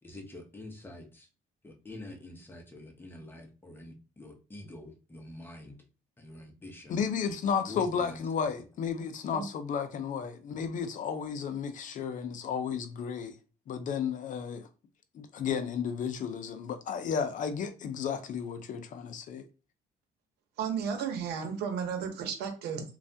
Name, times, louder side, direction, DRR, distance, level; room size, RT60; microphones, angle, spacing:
voice 1, 0.0-1.3 1.6-5.8 6.2-7.0 7.7-8.6, left 1 dB, 10° left, 0.8 m, -46 dB
voice 2, 6.9-13.4 13.7-14.7 15.1-19.4, left 6 dB, 50° left, 0.6 m, -33 dB
voice 3, 20.6-22.8, right 7 dB, 75° right, 0.9 m, -33 dB
3.2 x 2.3 x 2.7 m
cardioid pair, 110°, 17 cm